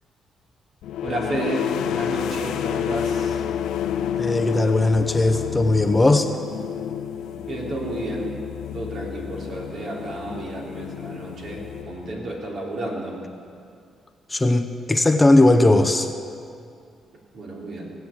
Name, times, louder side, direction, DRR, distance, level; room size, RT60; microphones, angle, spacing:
sound 1, 0.8-12.4, left 9 dB, 80° left, 0.5 m, -29 dB
voice 1, 1.0-3.3 7.5-8.3 8.7-13.1 17.3-17.9, right 1 dB, 60° right, -2 dB, 3.4 m, -31 dB
voice 2, 4.2-6.3 14.3-16.1, left 2 dB, 15° left, 7 dB, 0.8 m, -18 dB
17.5 x 7.8 x 8.5 m, 2.4 s
cardioid pair, 90°, 0 cm